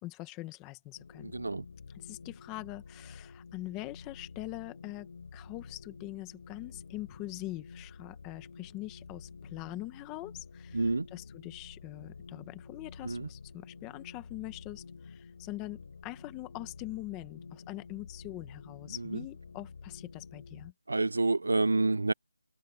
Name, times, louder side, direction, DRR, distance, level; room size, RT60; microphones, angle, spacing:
voice 1, 0.0-1.3 1.9-20.7, left 18 dB, 5° left, 1.1 m, -43 dB
sound 1, 0.9-20.7, left 5 dB, 35° left, 7.2 m, -50 dB
voice 2, 1.3-1.6 10.7-11.1 13.0-13.3 20.9-22.1, right 3 dB, 65° right, 0.4 m, -28 dB
figure-of-eight pair, 180°, 0 cm